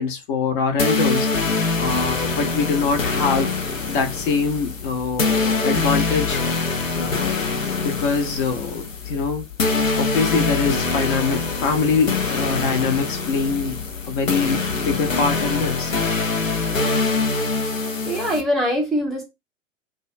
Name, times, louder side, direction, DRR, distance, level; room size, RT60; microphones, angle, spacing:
voice 1, 0.0-1.5 1.8-3.6 3.9-7.3 7.8-13.8 14.0-16.3, left 5 dB, 40° left, 0.7 m, -24 dB
sound 1, 0.8-18.4, left 4 dB, 90° left, 0.6 m, -24 dB
sound 2, 1.9-15.7, left 13 dB, 70° left, 0.9 m, -40 dB
voice 2, 16.7-17.1 18.0-19.2, equal, ahead, 0.4 m, -24 dB
2.3 x 2.2 x 2.6 m
figure-of-eight pair, 95°, 38 cm